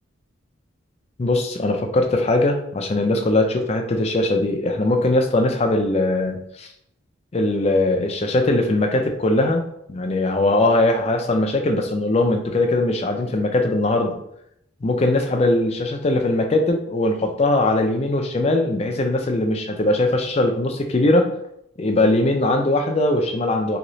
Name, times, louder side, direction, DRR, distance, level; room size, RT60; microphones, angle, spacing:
voice 1, 1.2-6.7 7.3-9.6 9.9-14.2 14.8-21.3 21.8-23.8, left 2 dB, 30° left, 4 dB, 0.4 m, -20 dB
3.1 x 2.8 x 2.6 m, 0.74 s
head